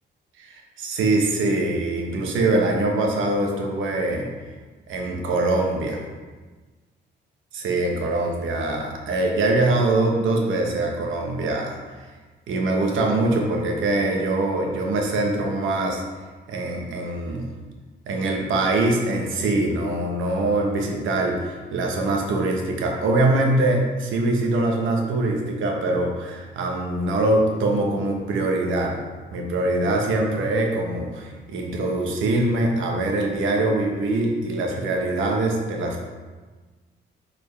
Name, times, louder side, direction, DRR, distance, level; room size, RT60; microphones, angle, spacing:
voice 1, 0.4-4.3 4.9-6.0 7.5-12.0 12.5-16.0 16.5-17.5 18.1-28.9 29.3-36.0, right 2 dB, 80° right, 1 dB, 1.2 m, -23 dB
6.9 x 4.6 x 3.3 m, 1.4 s
cardioid pair, 90°, 20 cm